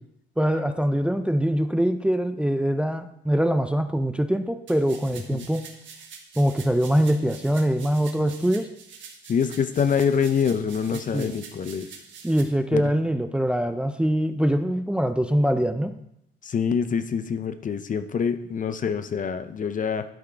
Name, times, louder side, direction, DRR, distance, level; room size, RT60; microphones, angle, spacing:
voice 1, 0.4-5.7 6.4-8.7 10.9-11.3 12.2-15.9, equal, 5° right, 9 dB, 0.5 m, -23 dB
sound 1, 4.7-12.4, right 6 dB, 70° right, 1.4 m, -45 dB
voice 2, 9.3-11.9 12.7-12.9 16.4-20.1, left 6 dB, 40° left, 11 dB, 0.6 m, -25 dB
11.5 x 4.9 x 4.4 m, 0.77 s
cardioid pair, 90°, 20 cm